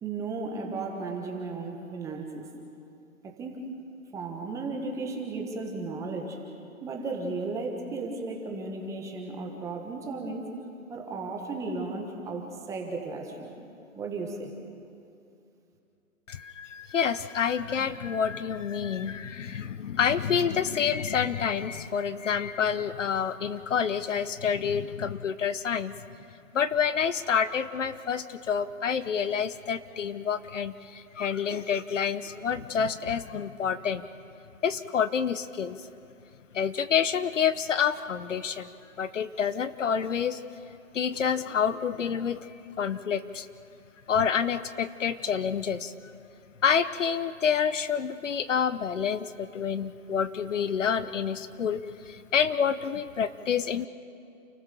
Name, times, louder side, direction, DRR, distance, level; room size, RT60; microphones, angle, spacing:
voice 1, 0.0-2.5 3.2-3.7 4.1-6.4 6.8-10.5 10.9-13.5 13.9-14.5, right 3 dB, 5° right, 1 dB, 1.4 m, -35 dB
voice 2, 16.3-25.9 26.5-34.0 34.6-35.8 36.5-38.7 39.0-40.4 40.9-42.5 42.8-43.5 44.1-45.9 46.6-53.9, left 7 dB, 60° left, 14 dB, 0.9 m, -28 dB
29.0 x 15.0 x 6.9 m, 2.6 s
hypercardioid pair, 155°, 42 cm